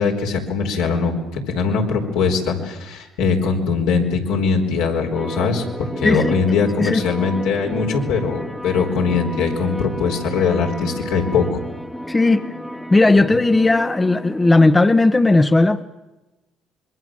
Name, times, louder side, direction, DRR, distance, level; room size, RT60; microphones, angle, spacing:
voice 1, 0.0-11.6, left 5 dB, 80° left, 0 dB, 4.4 m, -21 dB
sound 1, 5.1-14.8, equal, 5° left, 1.6 m, -32 dB
voice 2, 6.0-6.4 6.8-7.0 12.1-12.4 12.9-15.8, left 2 dB, 20° left, 10 dB, 1.1 m, -15 dB
26.0 x 22.5 x 7.5 m, 1.1 s
hypercardioid pair, 65°, 0 cm